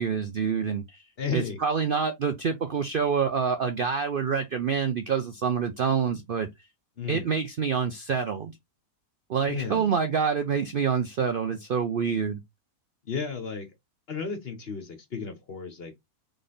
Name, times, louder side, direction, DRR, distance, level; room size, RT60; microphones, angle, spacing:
voice 1, 0.0-1.0 1.3-6.5 7.1-8.5 9.3-12.4, right 6 dB, 80° right, 0.4 m, -27 dB
voice 2, 1.2-1.6 7.0-7.3 9.5-9.9 13.0-13.7 14.1-16.0, left 5 dB, 40° left, 1.2 m, -33 dB
3.9 x 3.5 x 3.8 m
omnidirectional pair, 1.7 m